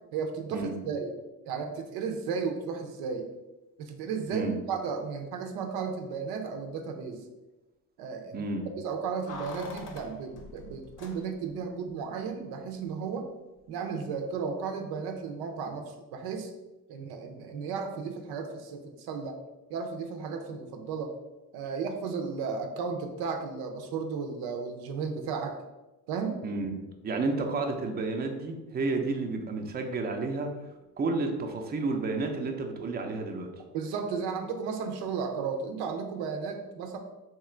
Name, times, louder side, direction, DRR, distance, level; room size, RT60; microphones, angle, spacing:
voice 1, 0.1-1.1 1.4-3.3 3.8-7.2 8.0-8.5 8.8-13.3 13.7-16.5 16.9-19.4 19.7-21.1 21.5-25.6 26.1-26.4 33.7-37.0, right 5 dB, 90° right, 4 dB, 0.6 m, -34 dB
voice 2, 8.3-8.7 26.4-30.5 31.0-33.5, right 3 dB, 25° right, 3 dB, 0.5 m, -31 dB
Keys jangling, 9.3-11.6 11.9-12.0, left 3 dB, 55° left, 0.8 m, -44 dB
3.0 x 2.4 x 4.3 m, 1.1 s
cardioid pair, 100°, 37 cm